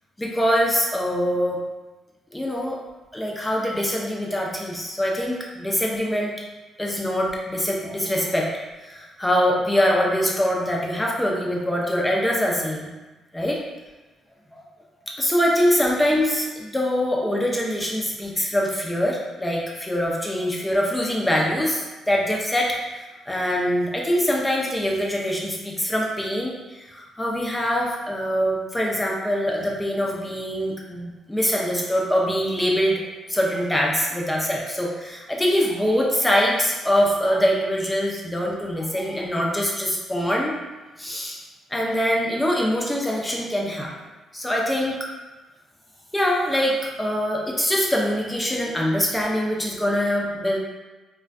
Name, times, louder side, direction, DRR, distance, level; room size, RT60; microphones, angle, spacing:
voice 1, 0.2-1.6 2.3-2.8 3.1-6.3 6.8-8.5 8.8-12.9 13.3-13.6 14.5-14.6 15.1-22.8 23.3-33.0 33.3-40.5 41.0-41.4 41.7-43.9 44.3-45.0 46.1-50.6, equal, 10° left, -2 dB, 0.5 m, -23 dB
2.4 x 2.1 x 2.4 m, 1.2 s
cardioid pair, 90°, 0 cm